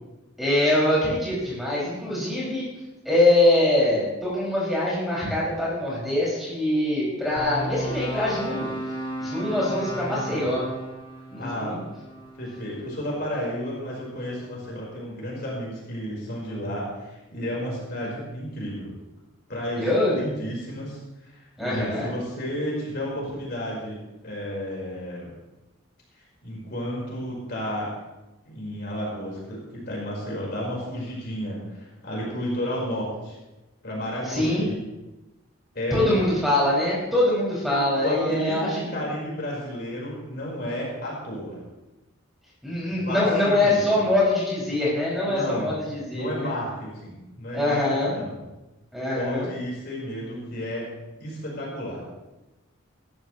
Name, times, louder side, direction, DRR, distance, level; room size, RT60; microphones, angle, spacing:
voice 1, 0.4-2.6 3.0-8.7 9.2-10.6 11.3-11.8 19.7-20.2 21.6-22.1 34.2-34.6 35.9-39.0 42.6-46.5 47.5-48.1 48.9-49.5, left 1 dB, ahead, -7 dB, 6.3 m, -23 dB
sound 1, 7.4-13.6, right 1 dB, 25° left, 2.4 m, -34 dB
voice 2, 9.9-10.5 11.3-11.7 12.4-18.9 19.5-21.3 21.6-25.3 26.4-27.9 28.4-33.3 33.8-34.8 35.7-36.1 37.6-41.6 42.9-44.1 45.2-45.7 46.1-48.3 49.1-50.9 51.2-52.0, equal, 50° left, -4 dB, 4.9 m, -32 dB
19.5 x 13.5 x 3.3 m, 1.0 s
head